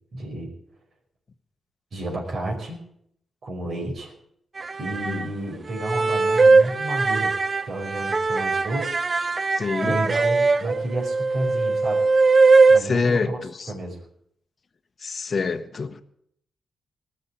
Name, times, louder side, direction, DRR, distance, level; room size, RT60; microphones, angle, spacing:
voice 1, 0.1-0.5 1.9-2.8 3.4-4.1 4.8-7.3 7.7-9.0 9.8-12.0 12.7-13.4 13.7-14.0, right 1 dB, 55° right, 0 dB, 5.1 m, -31 dB
sound 1, 4.6-5.2 5.8-12.8, right 3 dB, 40° right, 0.6 m, -20 dB
voice 2, 9.5-10.0 12.8-13.7 15.0-16.0, left 4 dB, 45° left, 8 dB, 1.1 m, -26 dB
19.5 x 6.6 x 8.3 m, 0.71 s
cardioid pair, 90°, 0 cm